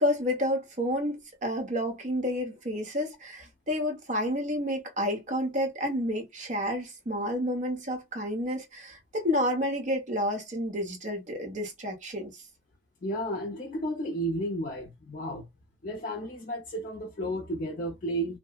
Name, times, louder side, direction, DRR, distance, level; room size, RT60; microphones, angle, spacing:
voice 1, 0.0-12.4, equal, 40° right, 0.8 m, -30 dB
voice 2, 13.0-15.5 15.8-18.4, right 1 dB, 45° left, 0.5 m, -33 dB
3.1 x 2.0 x 2.3 m
head